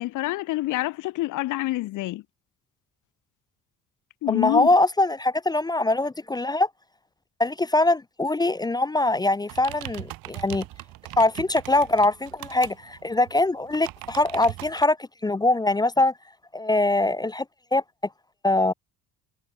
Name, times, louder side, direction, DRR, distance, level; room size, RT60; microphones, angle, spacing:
voice 1, 0.0-2.2 4.2-4.7, left 17 dB, 60° left, 0.6 m, -27 dB
voice 2, 4.3-6.7 7.4-10.6 11.2-15.0 15.2-16.1 16.5-17.5 17.7-17.8 18.4-18.7, left 2 dB, 10° left, 0.5 m, -22 dB
sound 1, 9.5-14.9, right 19 dB, 70° right, 1.1 m, -40 dB
cardioid pair, 125°, 35 cm